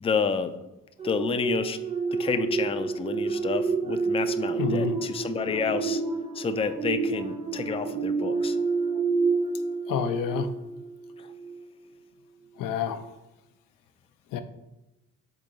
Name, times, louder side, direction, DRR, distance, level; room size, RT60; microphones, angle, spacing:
voice 1, 0.0-0.5 1.0-1.8 2.2-6.0 6.3-8.6, left 6 dB, 20° left, 9 dB, 0.3 m, -29 dB
sound 1, 1.0-10.9 11.3-11.5, right 4 dB, 20° right, 0.7 m, -28 dB
voice 2, 4.6-5.0 9.9-10.5 12.6-13.0 14.3-14.4, left 8 dB, 85° left, 9 dB, 0.5 m, -28 dB
4.9 x 2.8 x 3.9 m, 0.98 s
cardioid pair, 70°, 32 cm